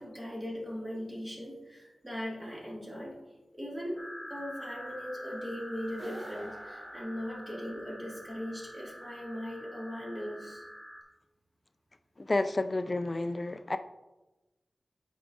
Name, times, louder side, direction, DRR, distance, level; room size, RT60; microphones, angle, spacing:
voice 1, 0.0-3.2 3.5-10.6, equal, 20° right, 2.3 m, -39 dB
sound 1, 4.0-11.0, equal, ahead, 1.7 m, -46 dB
sound 2, 5.9-7.9, right 1 dB, 45° right, 0.9 m, -48 dB
voice 2, 12.2-13.8, left 2 dB, 35° left, 0.3 m, -30 dB
8.7 x 4.6 x 3.8 m
wide cardioid pair, 85°, 0 cm